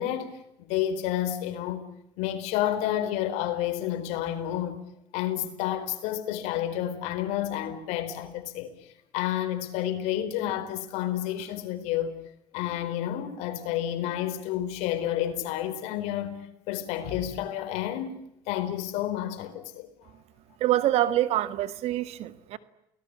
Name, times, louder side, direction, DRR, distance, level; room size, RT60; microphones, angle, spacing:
voice 1, 0.0-1.9 2.2-4.8 5.1-12.1 12.5-18.2 18.5-19.9, left 11 dB, 85° left, 4.4 m, -30 dB
voice 2, 20.6-22.6, right 13 dB, 70° right, 1.9 m, -25 dB
29.5 x 19.0 x 9.8 m
cardioid pair, 105°, 11 cm